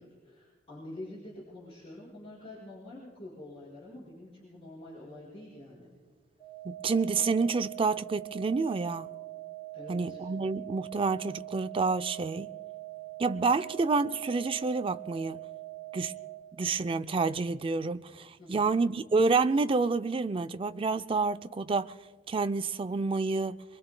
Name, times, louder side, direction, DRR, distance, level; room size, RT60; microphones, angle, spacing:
voice 1, 0.0-5.9 9.7-10.2 18.4-18.7, left 1 dB, 30° left, 5.0 m, -46 dB
sound 1, 6.4-16.4, right 19 dB, 15° left, 1.8 m, -43 dB
voice 2, 6.6-9.1 9.9-12.5 13.2-15.4 15.9-16.2 16.5-21.9 22.3-23.6, right 4 dB, 30° right, 0.4 m, -28 dB
26.5 x 23.0 x 2.2 m
head